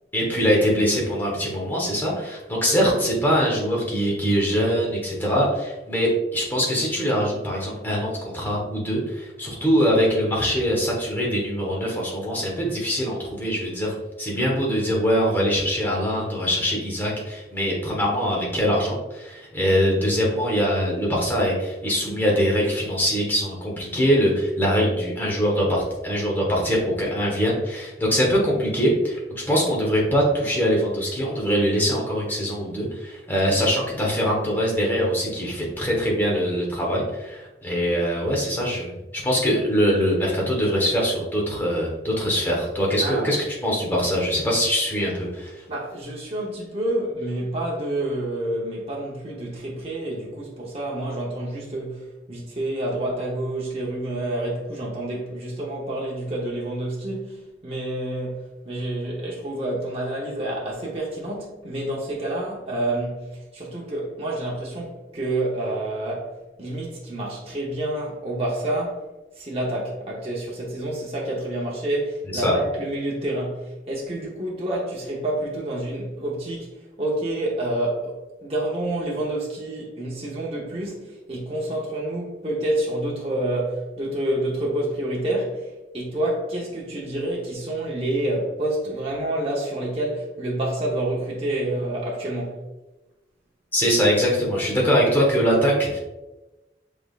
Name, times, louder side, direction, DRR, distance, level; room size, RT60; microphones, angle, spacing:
voice 1, 0.1-29.2 29.5-38.9 39.1-43.4 43.6-45.6 72.3-72.5 93.7-96.0, equal, 10° left, 1.1 m, -23 dB
voice 2, 43.0-43.4 45.7-66.3 66.6-69.1 69.3-76.7 77.0-78.2 78.4-92.6, right 1 dB, 35° right, 0.8 m, -28 dB
5.9 x 3.5 x 2.4 m
head